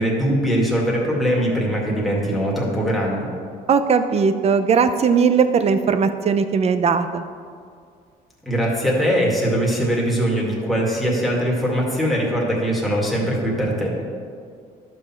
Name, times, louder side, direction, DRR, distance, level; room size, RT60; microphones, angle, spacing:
voice 1, 0.0-3.3 8.5-14.0, equal, ahead, -4 dB, 2.1 m, -21 dB
voice 2, 3.7-7.2, right 6 dB, 40° right, 10 dB, 0.6 m, -18 dB
11.5 x 6.3 x 4.4 m, 2.2 s
cardioid pair, 110°, 17 cm